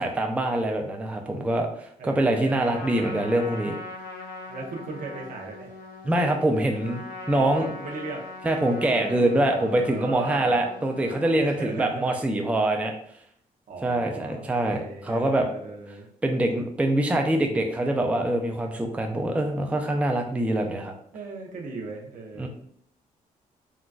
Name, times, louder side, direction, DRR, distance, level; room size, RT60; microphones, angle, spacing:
voice 1, 0.0-1.7 2.0-3.8 6.0-7.0 7.3-7.7 8.4-12.9 13.8-15.5 16.2-20.9 22.4-22.5, right 1 dB, 10° right, 3 dB, 0.4 m, -24 dB
voice 2, 2.0-2.8 4.5-5.7 7.3-8.3 9.0-10.6 11.4-12.1 13.7-16.1 21.1-22.5, right 3 dB, 70° right, 0 dB, 0.8 m, -37 dB
Trumpet, 2.6-11.4, left 3 dB, 85° left, 0.7 m, -41 dB
3.8 x 2.2 x 2.3 m, 0.64 s
cardioid pair, 90°, 14 cm